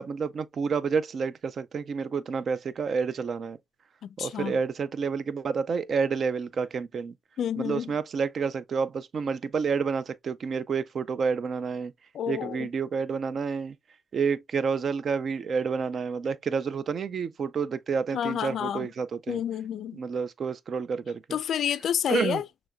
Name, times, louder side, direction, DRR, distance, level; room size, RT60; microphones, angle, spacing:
voice 1, 0.0-3.6 4.2-7.2 7.6-11.9 12.3-13.8 14.1-19.4 19.9-21.4 22.1-22.4, right 5 dB, 50° right, 0.5 m, -29 dB
voice 2, 4.0-4.6 7.4-7.9 12.1-12.7 18.1-18.9 19.3-20.0 21.3-22.4, left 9 dB, 65° left, 0.4 m, -29 dB
6.3 x 3.0 x 2.2 m
cardioid pair, 90°, 0 cm